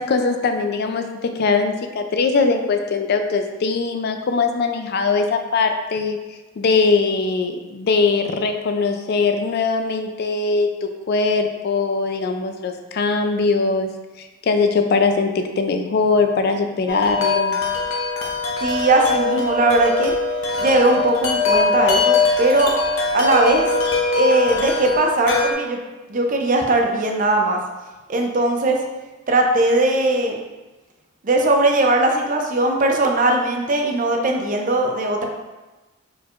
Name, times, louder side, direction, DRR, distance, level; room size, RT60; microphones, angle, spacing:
voice 1, 0.0-13.9 14.2-17.6, left 4 dB, 50° left, 6 dB, 0.4 m, -21 dB
Wind chime, 16.9-25.5, left 3 dB, 70° left, 0.7 m, -21 dB
voice 2, 18.6-20.1 20.6-22.7 23.1-23.7 24.1-25.8 26.1-27.6 28.1-28.8 29.3-30.3 31.2-35.3, right 2 dB, 40° right, 2 dB, 0.5 m, -19 dB
4.5 x 4.3 x 2.4 m, 1.1 s
head